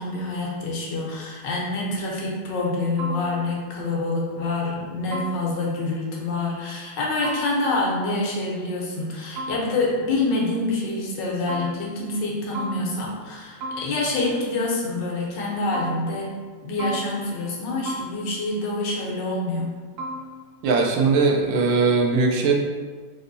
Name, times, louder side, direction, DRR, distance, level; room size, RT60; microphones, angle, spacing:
voice 1, 0.0-16.3 16.6-19.7, left 2 dB, 75° left, -3 dB, 1.4 m, -26 dB
sound 1, 3.0-3.8 5.1-5.9 7.2-8.0 9.4-10.2 11.5-12.3 12.5-13.3 13.6-14.4 15.7-16.5 16.8-17.6 17.9-18.7 20.0-20.6, right 1 dB, 60° right, 0.9 m, -36 dB
voice 2, 20.6-22.5, right 4 dB, 85° right, 1 dB, 1.3 m, -20 dB
4.2 x 2.6 x 2.6 m, 1.4 s
omnidirectional pair, 2.0 m